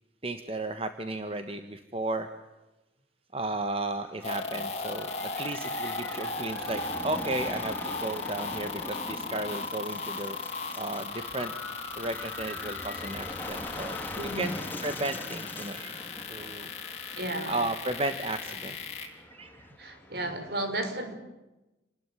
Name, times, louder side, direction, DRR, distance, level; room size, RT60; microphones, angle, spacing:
voice 1, 0.2-2.3 3.3-5.1 5.4-11.5 12.0-14.5 14.8-16.0 16.3-16.7 17.1-17.2 17.5-19.7, right 2 dB, 30° right, 8 dB, 1.4 m, -34 dB
sound 1, 3.9-20.5, left 1 dB, 10° left, 2.8 m, -42 dB
sound 2, 4.2-19.1, left 3 dB, 35° left, 4.1 m, -36 dB
voice 2, 17.1-17.5 19.8-21.1, right 1 dB, 60° right, 7 dB, 4.8 m, -33 dB
28.5 x 20.0 x 10.0 m, 1.0 s
head